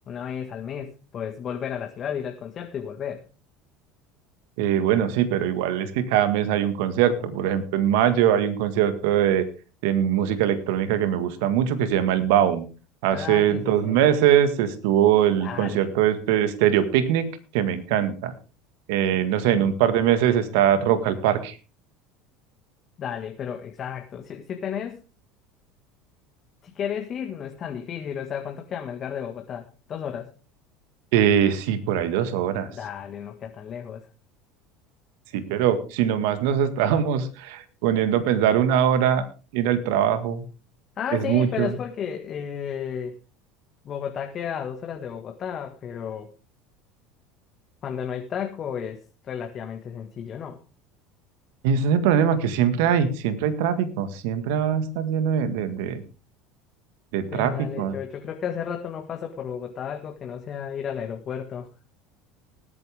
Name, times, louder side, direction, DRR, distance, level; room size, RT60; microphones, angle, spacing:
voice 1, 0.1-3.3 13.1-14.0 15.4-15.8 19.1-19.7 23.0-25.0 26.6-30.3 32.7-34.1 41.0-43.2 43.8-46.3 47.8-50.6 57.2-61.7, left 8 dB, 45° left, 4 dB, 1.8 m, -33 dB
voice 2, 4.6-9.5 9.8-12.7 13.0-17.3 17.5-18.3 18.9-21.6 31.1-32.7 35.3-39.3 39.5-40.4 41.1-41.7 51.6-56.0 57.1-57.9, right 9 dB, 70° right, 11 dB, 1.7 m, -22 dB
19.5 x 9.2 x 3.6 m, 0.34 s
hypercardioid pair, 85°, 0 cm